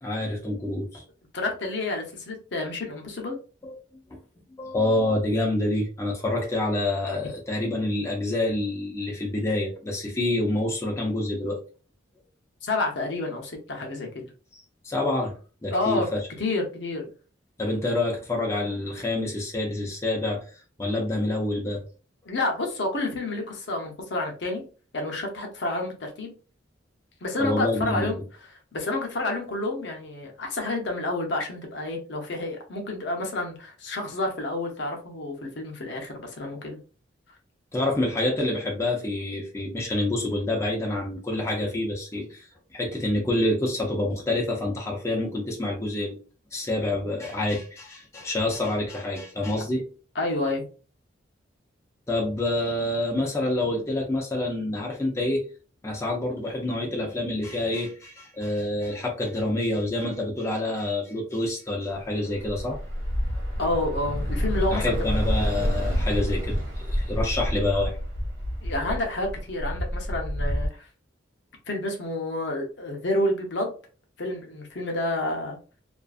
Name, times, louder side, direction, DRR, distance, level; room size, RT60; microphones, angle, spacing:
voice 1, 0.0-1.0 3.6-3.7 4.6-11.6 14.8-16.2 17.6-20.4 20.8-21.8 27.4-28.2 37.7-42.5 42.7-46.2 46.5-49.8 52.1-55.4 55.8-62.8 64.7-68.0, left 1 dB, 15° left, -2 dB, 0.5 m, -27 dB
voice 2, 1.3-3.4 7.1-7.2 12.6-14.3 15.7-16.1 16.4-17.1 22.3-24.6 24.9-26.3 27.2-36.8 50.1-50.6 63.6-65.2 68.6-70.9 71.7-73.7 74.2-75.6, left 2 dB, 60° left, 2 dB, 0.7 m, -29 dB
Bus / Traffic noise roadway noise, 61.9-70.7, equal, 80° right, 1.0 m, -28 dB
2.4 x 2.4 x 2.3 m, 0.37 s
head